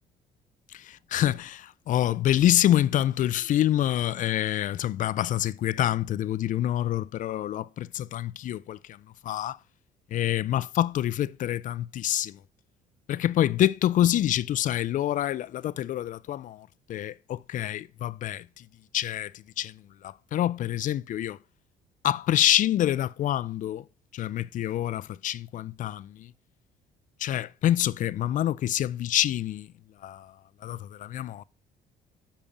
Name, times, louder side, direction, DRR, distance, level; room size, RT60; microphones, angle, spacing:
voice 1, 0.7-9.0 9.2-9.6 10.1-12.4 13.1-18.7 18.9-21.4 22.0-23.8 24.1-26.3 27.2-29.7 30.0-30.3 30.6-31.4, left 12 dB, 50° left, 0.4 m, -27 dB
7.3 x 5.1 x 7.0 m
cardioid pair, 110°, 17 cm